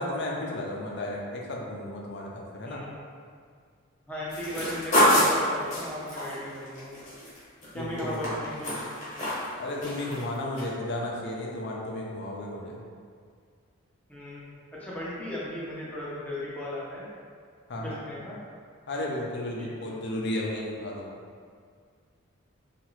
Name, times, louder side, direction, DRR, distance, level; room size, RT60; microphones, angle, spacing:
voice 1, 0.0-2.8 7.7-8.4 9.5-12.8 17.7-18.0 18.9-21.0, left 1 dB, 55° left, -2 dB, 0.5 m, -33 dB
voice 2, 2.6-3.0 4.1-7.0 7.7-8.8 14.1-17.1 17.7-18.4 19.6-19.9, left 1 dB, 5° left, -9 dB, 0.6 m, -37 dB
sound 1, 4.3-7.7 8.0-9.5 9.8-10.2 10.6-10.7, equal, 35° left, 1.0 m, -26 dB
2.8 x 2.4 x 3.0 m, 2.1 s
head